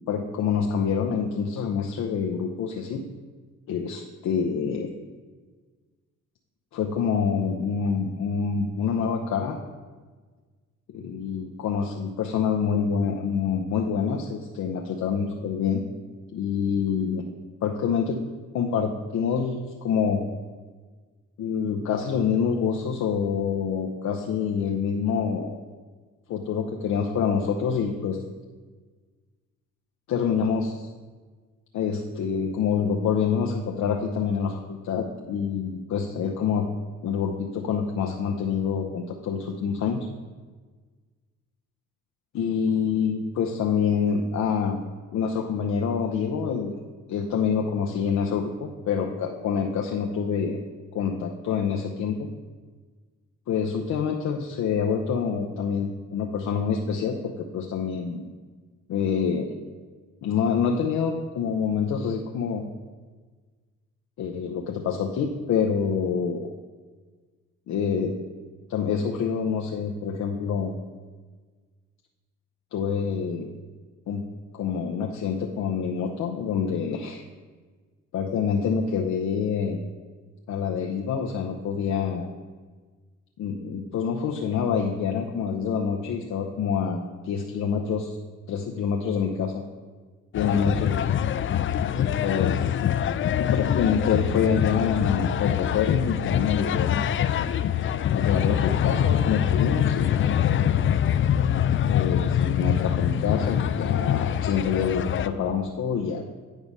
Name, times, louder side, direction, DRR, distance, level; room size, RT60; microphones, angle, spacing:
voice 1, 0.1-3.0 3.7-4.9 6.7-9.6 10.9-15.9 16.3-17.2 17.6-18.2 18.5-20.2 21.4-25.6 26.3-28.2 30.1-30.9 31.7-36.7 37.0-40.0 42.3-44.8 45.1-46.7 47.1-50.6 50.9-52.3 53.5-58.2 58.9-59.5 60.2-62.6 64.2-66.5 67.7-68.1 68.7-70.7 72.7-73.5 74.1-74.2 74.5-77.2 78.1-79.8 80.5-82.3 83.4-88.2 88.5-89.6 90.3-91.0 91.9-92.7 93.4-97.0 98.1-100.4 101.9-106.2, left 6 dB, 70° left, 1 dB, 0.8 m, -26 dB
sound 1, 90.3-105.3, left 10 dB, 45° left, 0.4 m, -24 dB
9.1 x 4.8 x 5.4 m, 1.4 s
cardioid pair, 90°, 30 cm